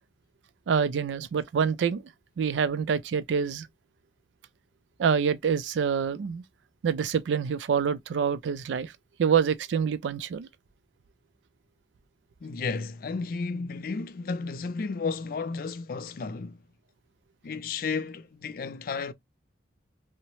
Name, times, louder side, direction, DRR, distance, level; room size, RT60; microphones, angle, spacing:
voice 1, 0.7-2.0 2.4-3.7 5.0-6.4 6.8-8.9 9.2-10.5, right 6 dB, 85° right, 0.3 m, -26 dB
voice 2, 12.4-16.6 17.4-19.1, left 4 dB, 50° left, 0.4 m, -33 dB
2.8 x 2.0 x 2.9 m
head